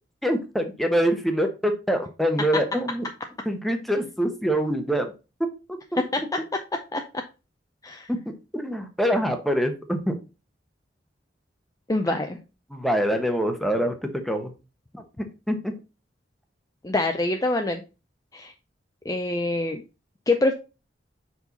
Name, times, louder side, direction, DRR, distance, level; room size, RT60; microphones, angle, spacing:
voice 1, 0.2-3.0 3.5-5.1 5.9-6.0 8.3-10.1 12.1-12.2 12.7-14.5 14.9-15.0 15.5-15.7, equal, ahead, 5 dB, 0.9 m, -25 dB
voice 2, 11.9-12.4 16.8-17.8 18.3-18.5 19.1-19.8 20.3-20.5, left 2 dB, 20° left, 5 dB, 0.5 m, -25 dB
5.5 x 4.8 x 4.0 m, 0.30 s
head